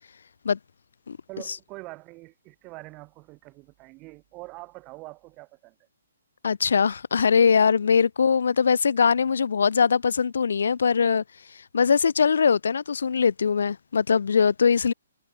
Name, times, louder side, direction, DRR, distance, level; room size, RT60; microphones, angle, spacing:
voice 1, 1.3-5.9, right 23 dB, 25° right, 5.4 m, -44 dB
voice 2, 6.4-11.2 11.7-14.9, left 6 dB, 75° left, 0.4 m, -21 dB
hypercardioid pair, 160°, 0 cm